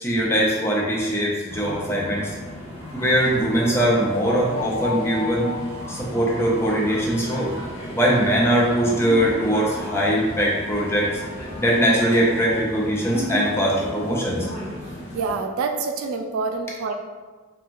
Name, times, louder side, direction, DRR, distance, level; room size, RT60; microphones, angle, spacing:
voice 1, 0.0-2.3 2.9-5.5 5.9-7.5 7.9-11.1 11.6-14.5, equal, 10° left, -4 dB, 0.5 m, -21 dB
sound 1, 1.5-15.4, left 1 dB, 75° left, 1.0 m, -33 dB
voice 2, 15.1-16.9, right 4 dB, 80° right, 5 dB, 0.3 m, -26 dB
3.0 x 2.3 x 2.5 m, 1.4 s
head